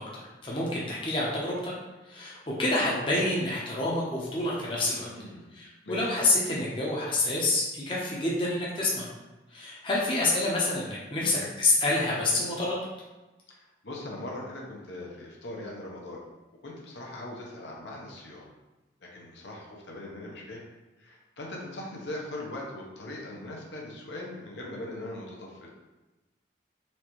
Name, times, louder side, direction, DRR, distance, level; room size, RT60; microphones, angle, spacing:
voice 1, 0.0-1.7 2.1-5.1 5.5-9.1 9.5-12.9, left 2 dB, 25° left, -5 dB, 0.7 m, -28 dB
voice 2, 4.8-5.5 5.8-6.1 11.2-11.4 13.5-16.2 16.6-18.4 19.0-20.6 21.0-25.7, left 1 dB, 70° left, -2 dB, 0.9 m, -40 dB
4.3 x 3.3 x 3.0 m, 1.1 s
head